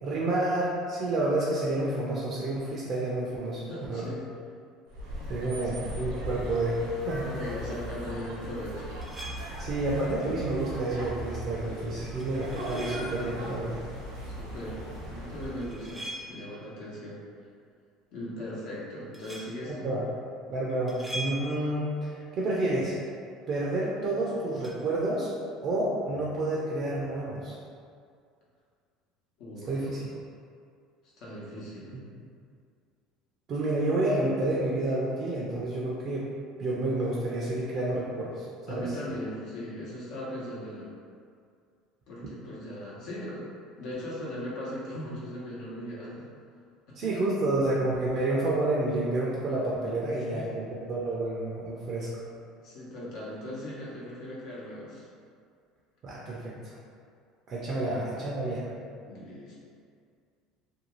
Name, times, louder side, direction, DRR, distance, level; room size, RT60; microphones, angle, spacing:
voice 1, 0.0-3.6 3.9-4.1 5.3-7.3 9.6-13.8 19.7-20.1 20.5-23.0 23.5-25.3 25.6-27.6 29.6-30.1 33.5-36.3 36.6-38.9 47.0-52.1 56.0-56.7 57.5-58.7, right 2 dB, 50° right, -5 dB, 0.5 m, -29 dB
voice 2, 3.7-4.2 5.6-5.9 7.3-9.0 14.3-17.2 18.1-19.9 29.4-30.0 31.0-32.0 38.7-40.9 42.1-43.4 43.8-46.3 47.0-47.1 50.3-50.5 52.6-55.1 57.8-58.0 59.0-59.5, left 1 dB, 65° left, -6 dB, 0.9 m, -39 dB
sound 1, 4.9-16.0, right 1 dB, 85° right, 0.8 m, -38 dB
sound 2, 9.0-9.8 12.2-13.4 15.4-16.7 19.1-19.6 20.9-21.9 24.6-24.7, right 1 dB, 10° right, 0.6 m, -41 dB
2.6 x 2.3 x 3.0 m, 2.2 s
supercardioid pair, 85°, 0 cm